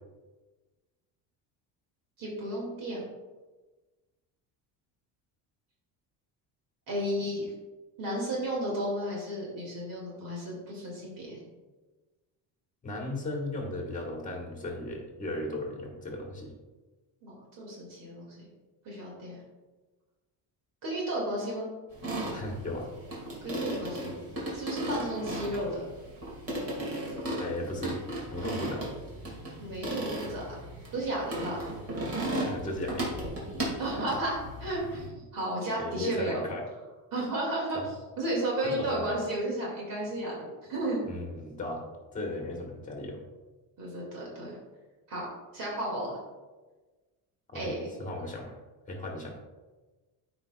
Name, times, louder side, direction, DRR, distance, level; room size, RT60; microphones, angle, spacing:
voice 1, 2.2-3.0 6.9-7.5 8.0-11.4 17.2-18.4 18.8-19.4 20.8-21.7 23.4-24.1 24.5-25.9 29.6-30.4 30.9-31.7 33.8-36.4 37.1-37.8 38.2-41.0 43.8-44.5 45.1-45.3 45.5-46.2 47.5-47.8, right 1 dB, 55° right, -4 dB, 2.4 m, -33 dB
voice 2, 12.8-16.5 22.3-22.8 27.4-28.0 28.3-28.8 32.4-33.2 35.8-36.7 37.7-37.9 38.6-39.2 41.1-41.8 42.1-43.2 47.5-48.5 48.9-49.4, left 1 dB, 20° left, 0 dB, 1.4 m, -36 dB
sound 1, 21.9-35.1, right 1 dB, 35° right, 2.3 m, -36 dB
14.0 x 4.9 x 2.4 m, 1.2 s
cardioid pair, 170°, 40 cm